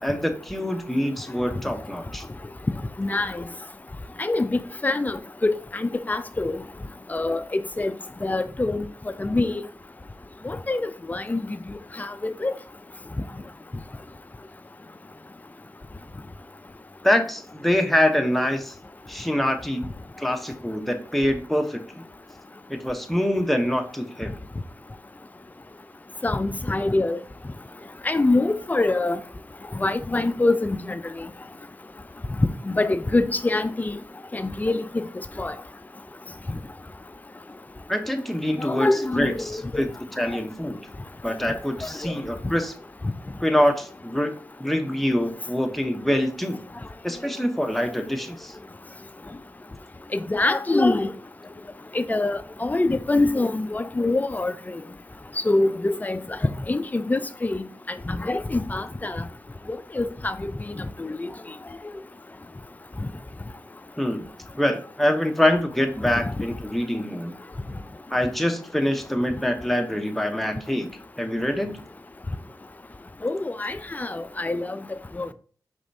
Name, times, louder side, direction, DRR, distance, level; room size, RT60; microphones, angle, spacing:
voice 1, 0.0-2.2 17.0-18.7 19.1-19.9 20.2-22.0 22.7-24.3 37.9-38.9 39.1-39.9 40.2-40.8 41.2-42.7 43.4-44.3 44.6-46.6 47.0-48.5 64.0-64.3 64.6-67.3 68.1-70.9 71.2-71.8, left 1 dB, ahead, 0.8 m, -25 dB
voice 2, 3.0-3.4 4.2-6.6 7.1-7.9 8.2-8.8 9.2-9.5 10.4-11.6 12.0-12.5 26.2-27.2 28.0-29.2 29.7-31.0 32.7-34.0 34.3-34.8 35.4-35.5 38.6-39.8 42.0-42.1 50.1-51.1 51.9-54.5 55.5-57.7 58.1-59.2 60.0-60.5 60.8-61.3 73.2-74.8 75.2-75.3, left 2 dB, 20° left, 0.4 m, -25 dB
5.0 x 3.4 x 2.7 m
cardioid pair, 50°, 7 cm